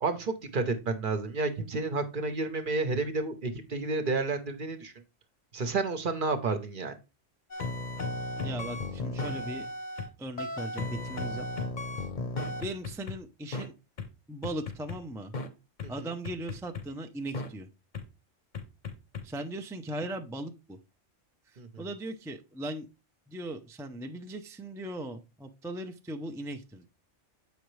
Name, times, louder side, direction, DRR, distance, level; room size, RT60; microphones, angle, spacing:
voice 1, 0.0-4.9 5.5-6.9 15.8-15.9 21.6-21.7, right 3 dB, 50° right, 8 dB, 0.9 m, -30 dB
sound 1, 7.5-10.1 10.4-13.2 13.5-13.7 14.0-14.1 14.4-15.0 15.3-15.5 15.8-15.9 16.3-16.8 17.3-17.5 17.9-18.0 18.5-19.2, left 2 dB, 45° left, 0.9 m, -35 dB
voice 2, 8.4-9.7 10.2-11.5 12.6-13.7 14.3-15.3 15.9-17.7 19.2-20.8 21.5-22.9 23.3-26.9, right 1 dB, 5° right, 5 dB, 0.3 m, -38 dB
7.9 x 5.2 x 3.1 m, 0.27 s
omnidirectional pair, 1.2 m